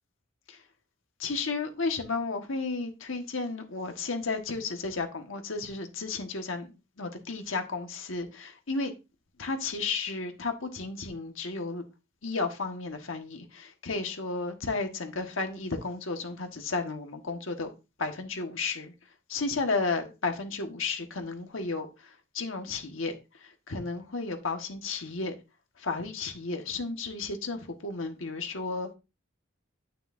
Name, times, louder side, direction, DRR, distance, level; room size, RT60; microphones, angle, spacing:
voice 1, 1.2-6.7 7.0-8.9 9.4-11.8 12.2-17.7 18.0-18.9 19.3-25.3 25.8-28.9, left 3 dB, 80° left, 1.4 m, -33 dB
9.5 x 6.5 x 2.5 m
head